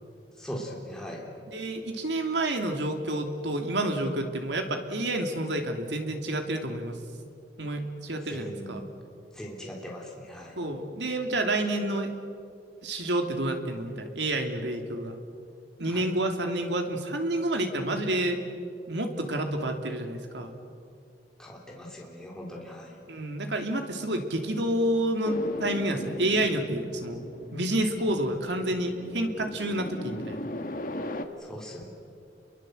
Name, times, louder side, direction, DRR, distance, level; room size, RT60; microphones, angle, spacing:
voice 1, 0.4-1.3 8.3-8.9 9.3-10.6 15.9-16.1 21.4-22.9 31.4-31.9, equal, 5° left, -2 dB, 3.4 m, -40 dB
voice 2, 1.5-7.0 7.6-8.8 10.6-12.2 12.8-15.2 15.8-18.4 18.9-20.6 23.1-27.2 27.5-30.4, right 1 dB, 85° right, 4 dB, 2.8 m, -29 dB
sound 1, 25.2-31.3, left 1 dB, 50° left, 1.5 m, -39 dB
30.0 x 23.0 x 7.9 m, 2.5 s
head